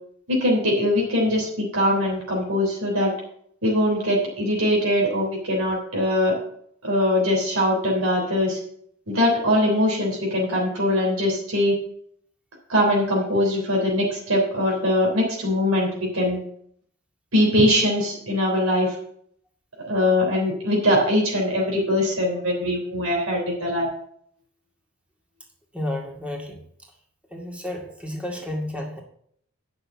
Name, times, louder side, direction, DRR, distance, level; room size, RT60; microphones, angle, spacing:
voice 1, 0.3-3.1 3.6-6.4 6.8-8.6 9.1-11.8 12.7-16.4 17.3-18.9 19.8-23.9, left 1 dB, 80° right, -1 dB, 3.4 m, -22 dB
voice 2, 25.7-26.6 27.3-29.0, left 1 dB, 5° right, 0 dB, 2.1 m, -31 dB
9.8 x 6.4 x 7.1 m, 0.65 s
head